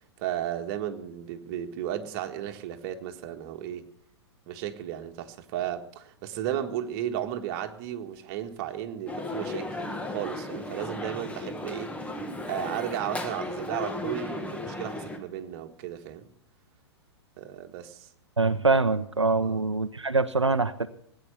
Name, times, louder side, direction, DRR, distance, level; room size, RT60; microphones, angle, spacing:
voice 1, 0.2-3.8 4.5-9.8 10.1-12.0 12.5-16.3 17.4-18.1 19.4-19.6, right 11 dB, 40° right, 1.6 m, -34 dB
sound 1, 9.1-15.2, left 2 dB, 10° left, 1.6 m, -35 dB
voice 2, 18.4-20.9, right 3 dB, 90° right, 0.7 m, -24 dB
19.0 x 9.3 x 6.8 m
figure-of-eight pair, 105°, 14 cm